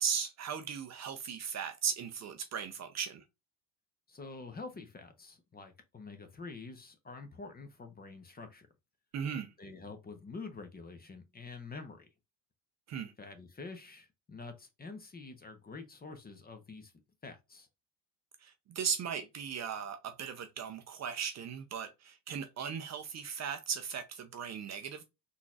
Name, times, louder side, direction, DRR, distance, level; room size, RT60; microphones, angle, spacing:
voice 1, 0.0-3.2 9.1-9.5 12.9-13.1 18.4-25.0, right 7 dB, 35° right, 0.6 m, -37 dB
voice 2, 4.1-8.7 9.6-12.1 13.2-16.9 17.2-17.7, left 4 dB, 20° left, 0.8 m, -47 dB
3.8 x 2.9 x 2.4 m
hypercardioid pair, 75°, 50 cm